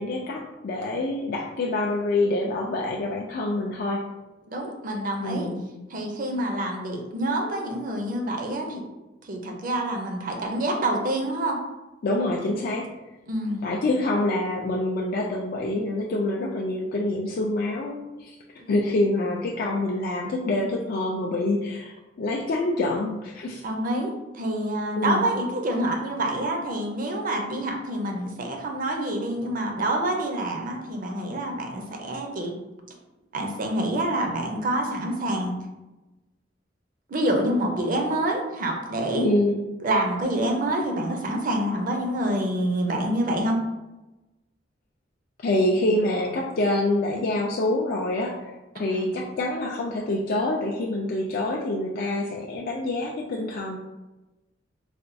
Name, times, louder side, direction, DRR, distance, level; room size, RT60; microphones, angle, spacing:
voice 1, 0.0-4.0 5.2-5.6 12.0-12.9 13.6-18.4 18.7-21.9 22.2-23.6 25.0-25.3 39.2-39.6 45.4-53.8, left 2 dB, 50° left, -2 dB, 0.4 m, -26 dB
voice 2, 4.5-5.5 5.9-8.8 9.2-11.6 13.3-13.6 18.6-18.7 23.6-32.6 33.3-35.6 37.1-39.3 39.8-43.6 48.8-49.1, right 1 dB, 45° right, 2 dB, 0.6 m, -27 dB
4.1 x 2.2 x 2.6 m, 1.0 s
head